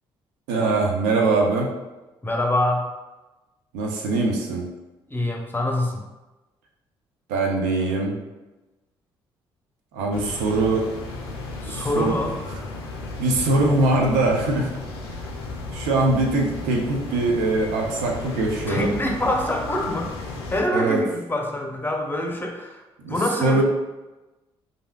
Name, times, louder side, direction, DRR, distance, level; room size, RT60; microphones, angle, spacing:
voice 1, 0.5-1.7 3.7-4.7 7.3-8.2 9.9-10.9 11.7-12.2 13.2-14.7 15.7-18.9 20.7-21.0 23.0-23.1 23.4-23.6, right 2 dB, 75° right, 1 dB, 0.5 m, -22 dB
voice 2, 2.2-2.9 5.1-6.0 11.6-12.4 18.7-20.1 20.5-23.6, left 1 dB, 15° left, 1 dB, 0.6 m, -25 dB
sound 1, 10.1-20.6, left 3 dB, 85° left, 0.4 m, -34 dB
3.2 x 2.6 x 2.2 m, 1.1 s
hypercardioid pair, 45°, 13 cm